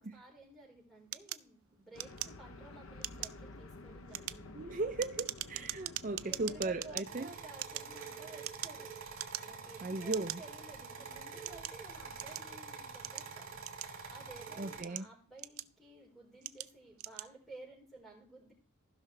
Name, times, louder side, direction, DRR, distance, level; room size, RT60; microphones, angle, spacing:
voice 1, 0.0-2.1 2.4-4.8 6.2-8.9 9.4-13.5 14.1-18.5, right 2 dB, ahead, 4.2 m, -54 dB
sound 1, 1.1-2.7 3.0-3.4 4.0-7.1 7.5-8.8 9.1-9.7 10.1-10.4 11.0-12.5 13.0-14.2 14.7-15.9 16.4-16.7 17.0-17.3, right 15 dB, 85° right, 0.5 m, -42 dB
sound 2, 1.9-7.0, left 2 dB, 75° left, 0.8 m, -51 dB
voice 2, 4.5-7.3 9.8-10.4 14.6-15.1, right 3 dB, 40° right, 0.5 m, -37 dB
sound 3, 7.0-14.8, right 5 dB, 70° right, 2.4 m, -47 dB
15.5 x 5.8 x 3.3 m
head